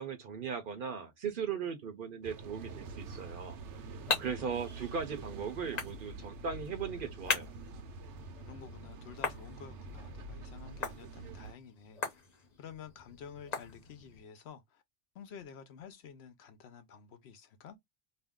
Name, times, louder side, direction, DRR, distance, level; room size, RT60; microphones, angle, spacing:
voice 1, 0.0-3.6 4.2-7.5, right 6 dB, 55° right, 0.7 m, -38 dB
sound 1, 2.2-11.5, right 3 dB, 85° right, 0.9 m, -46 dB
sound 2, 3.4-14.2, left 4 dB, 40° left, 0.8 m, -41 dB
voice 2, 8.5-12.2 12.6-14.8 15.1-17.8, left 7 dB, 70° left, 0.8 m, -51 dB
2.6 x 2.1 x 3.5 m
omnidirectional pair, 1.2 m